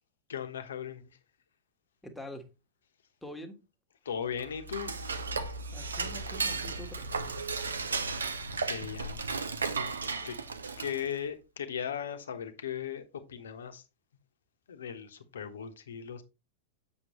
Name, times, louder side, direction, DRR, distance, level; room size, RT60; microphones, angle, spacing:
voice 1, 0.3-1.1 4.0-5.2 8.7-9.2 10.2-10.4 10.8-13.0 13.3-13.8 14.7-16.2, left 8 dB, 65° left, 1.1 m, -37 dB
voice 2, 2.0-2.4 3.2-3.6 5.7-7.4, left 1 dB, 5° left, 1.5 m, -45 dB
Dishes pots and pans / Cutlery silverware, 4.3-11.2, right 4 dB, 75° right, 0.7 m, -35 dB
7.7 x 6.2 x 3.0 m
figure-of-eight pair, 90°, 0 cm